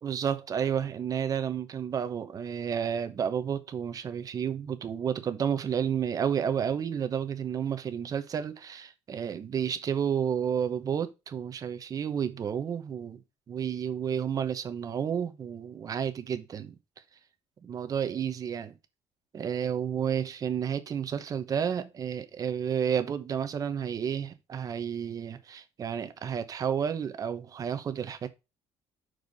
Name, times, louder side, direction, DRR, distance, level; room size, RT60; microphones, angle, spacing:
voice 1, 0.0-13.2 13.5-16.8 17.6-18.8 19.3-28.3, right 8 dB, 35° right, 1.0 m, -31 dB
6.5 x 4.7 x 5.3 m
cardioid pair, 165°, 11 cm